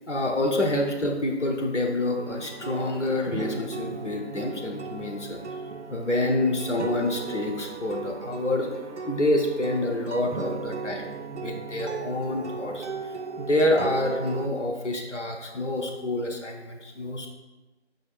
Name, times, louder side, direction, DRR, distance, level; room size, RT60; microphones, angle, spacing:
voice 1, 0.1-5.4 5.9-17.3, left 1 dB, 90° left, 1 dB, 0.9 m, -27 dB
listen to the nature, 2.2-14.5, right 5 dB, 75° right, 0.5 m, -36 dB
5.3 x 2.5 x 3.8 m, 1.1 s
figure-of-eight pair, 180°, 35 cm